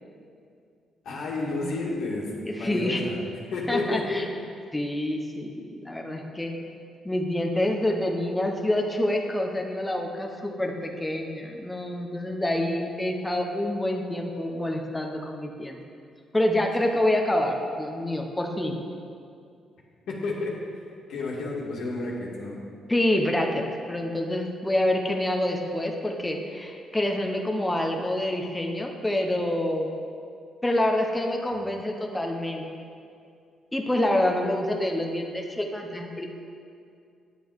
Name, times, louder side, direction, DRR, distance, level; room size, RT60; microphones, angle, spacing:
voice 1, 1.0-3.2 3.5-4.2 20.1-20.5 21.1-22.6, left 2 dB, 75° left, -4 dB, 1.8 m, -31 dB
voice 2, 2.4-3.0 3.7-4.2 4.7-6.5 7.0-15.8 16.3-18.8 22.9-29.9 30.6-32.6 33.7-36.3, left 1 dB, 10° left, 1 dB, 1.0 m, -27 dB
9.3 x 7.6 x 4.8 m, 2.4 s
cardioid pair, 90°, 0 cm